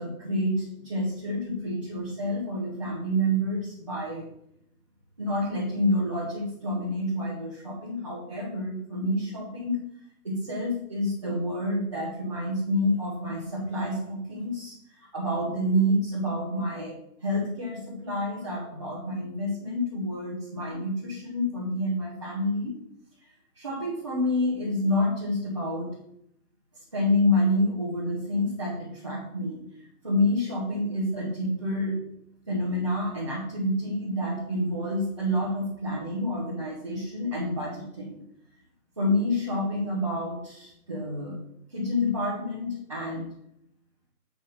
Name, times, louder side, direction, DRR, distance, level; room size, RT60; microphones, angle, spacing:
voice 1, 0.0-4.3 5.2-9.8 10.2-14.7 15.0-16.9 17.2-22.7 23.6-25.9 26.9-29.6 30.0-32.0 32.5-38.2 39.0-41.4 41.7-43.3, left 1 dB, 20° right, -5 dB, 1.0 m, -28 dB
7.5 x 5.0 x 5.3 m, 0.74 s
figure-of-eight pair, 150°, 45 cm